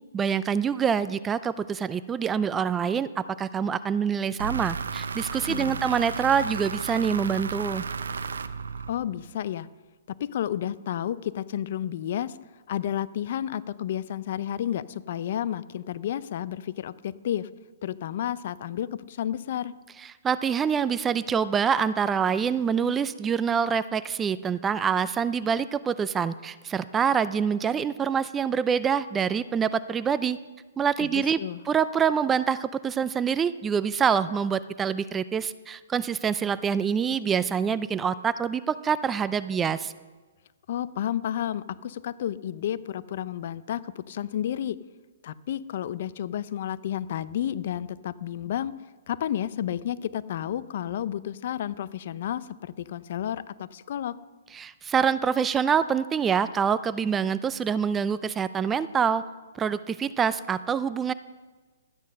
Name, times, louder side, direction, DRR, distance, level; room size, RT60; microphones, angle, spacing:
voice 1, 0.1-7.8 20.2-30.4 30.8-39.9 54.5-59.2 59.6-61.1, right 7 dB, 15° right, 15 dB, 0.4 m, -26 dB
sound 1, 4.4-9.3, right 5 dB, 85° right, 0.7 m, -33 dB
voice 2, 5.5-5.8 8.9-9.7 10.2-12.4 12.7-17.5 17.8-19.7 31.0-31.6 40.7-44.8 45.2-48.7 49.1-54.2, left 10 dB, 55° left, 17 dB, 0.5 m, -31 dB
12.5 x 9.4 x 6.5 m, 1.3 s
hypercardioid pair, 145°, 0 cm